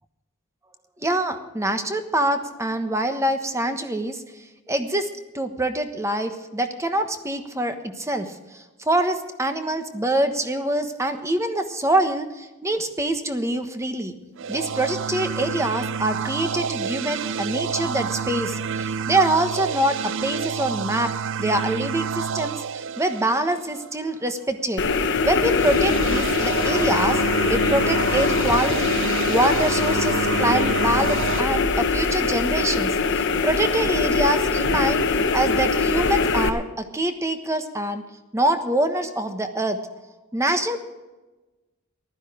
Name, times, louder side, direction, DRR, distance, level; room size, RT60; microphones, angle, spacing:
voice 1, 1.0-5.1 5.3-14.1 14.5-21.1 21.4-24.8 25.2-29.0 29.3-38.0 38.3-39.9 40.3-40.8, right 1 dB, 15° right, 7 dB, 1.2 m, -25 dB
sound 1, 14.4-23.9 25.4-31.4, right 7 dB, 60° right, 0.4 m, -29 dB
sound 2, 24.8-36.5, left 4 dB, 60° left, 1.1 m, -22 dB
15.0 x 12.5 x 5.0 m, 1.1 s
head